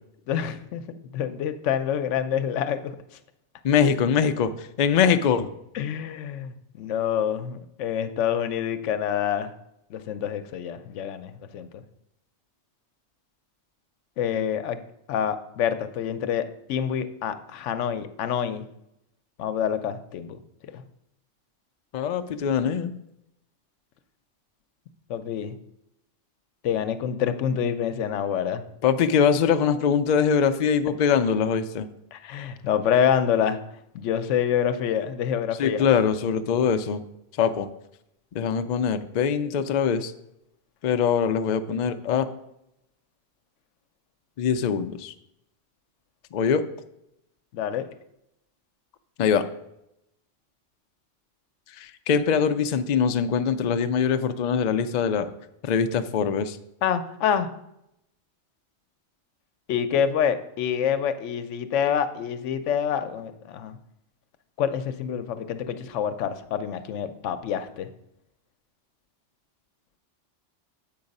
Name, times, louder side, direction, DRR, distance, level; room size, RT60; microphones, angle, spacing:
voice 1, 0.3-0.8 1.1-2.9 5.7-9.5 9.9-11.8 14.2-14.8 15.1-18.6 19.4-20.4 20.7-20.8 25.1-25.6 26.6-28.6 32.1-33.6 33.9-35.8 47.5-47.9 56.8-57.5 59.7-63.8 64.6-67.9, left 8 dB, 85° left, 11 dB, 0.9 m, -27 dB
voice 2, 3.6-5.5 21.9-22.9 28.8-31.9 35.6-37.0 37.4-37.7 38.3-40.1 40.8-42.3 44.4-45.1 46.3-46.6 49.2-49.4 51.8-55.3 55.6-56.6, left 7 dB, 60° left, 9 dB, 0.4 m, -23 dB
7.4 x 4.8 x 5.3 m, 0.82 s
omnidirectional pair, 1.2 m